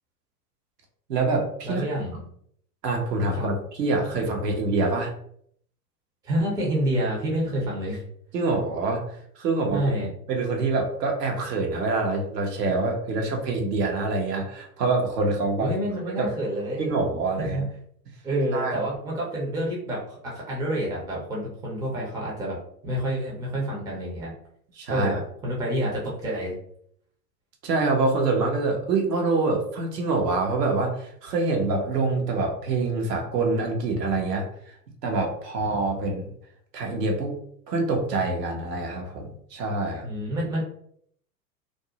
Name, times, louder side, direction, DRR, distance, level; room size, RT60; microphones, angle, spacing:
voice 1, 1.1-1.9 2.8-5.1 8.3-9.8 10.3-15.7 16.2-16.3 16.8-17.7 18.5-18.8 24.8-25.2 27.6-34.7 35.0-36.3 36.7-37.3 37.7-40.1, right 3 dB, 70° right, 1 dB, 0.9 m, -25 dB
voice 2, 1.6-2.2 3.3-3.5 6.2-8.0 9.7-10.1 15.6-16.9 17.4-17.6 18.2-22.6 22.8-24.3 24.9-26.6 40.0-40.6, right 1 dB, 10° right, -4 dB, 0.5 m, -28 dB
2.6 x 2.0 x 2.8 m, 0.66 s
hypercardioid pair, 95°, 50 cm